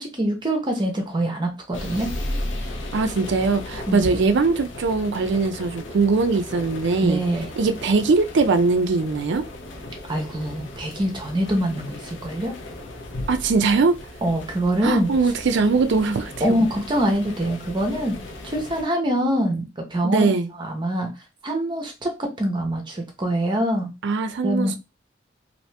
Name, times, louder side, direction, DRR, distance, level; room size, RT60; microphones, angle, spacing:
voice 1, 0.0-2.1 3.9-4.1 7.0-7.5 10.1-12.5 14.2-15.1 16.4-18.2 18.4-21.1 21.4-23.9 24.4-24.8, right 1 dB, 25° right, 0.7 m, -24 dB
sound 1, 1.7-18.8, left 1 dB, 85° left, 0.8 m, -35 dB
voice 2, 2.9-7.2 7.6-9.4 13.3-13.9 14.8-16.6 20.0-20.5 24.0-24.8, right 4 dB, 65° right, 0.4 m, -21 dB
2.8 x 2.6 x 3.2 m
head